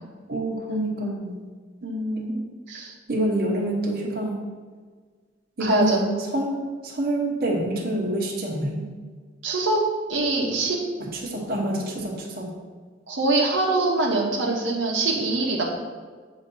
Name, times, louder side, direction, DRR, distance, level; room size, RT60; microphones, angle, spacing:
voice 1, 0.3-1.5 3.1-4.4 5.6-6.1 6.3-8.8 11.0-12.5, right 1 dB, 55° right, -2 dB, 1.1 m, -27 dB
voice 2, 1.8-2.4 2.7-2.9 5.6-6.0 9.4-9.8 10.1-10.8 13.1-15.6, right 2 dB, 90° right, -2 dB, 1.0 m, -23 dB
7.9 x 2.8 x 5.5 m, 1.5 s
head